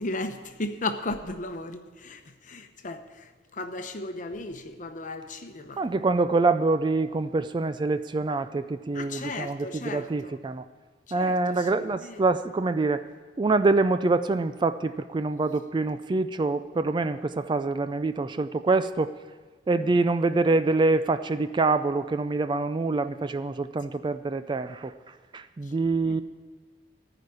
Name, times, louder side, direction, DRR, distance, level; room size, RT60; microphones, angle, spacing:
voice 1, 0.0-5.8 8.9-10.4 11.1-12.2 19.9-20.0 25.6-25.7 26.0-26.2, left 2 dB, 45° left, 8 dB, 0.9 m, -36 dB
voice 2, 5.8-10.6 11.1-13.0 13.4-19.1 19.7-24.9 25.3-26.2, right 3 dB, 25° right, 11 dB, 0.3 m, -25 dB
14.5 x 5.1 x 9.5 m, 1.4 s
head